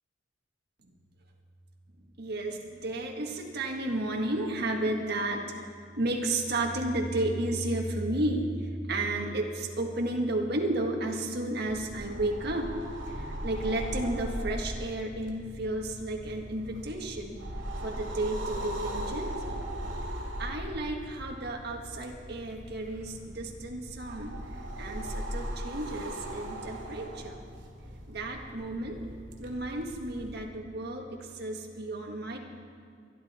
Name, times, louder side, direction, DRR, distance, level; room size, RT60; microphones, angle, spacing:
voice 1, 2.2-5.7 6.0-12.7 13.2-17.4 17.8-19.7 20.4-24.4 24.8-27.4 28.1-29.0 29.4-32.4, right 1 dB, 60° right, 1 dB, 1.8 m, -32 dB
sound 1, 11.7-30.4, equal, 90° right, 2.6 m, -39 dB
23.5 x 11.5 x 4.4 m, 2.3 s
head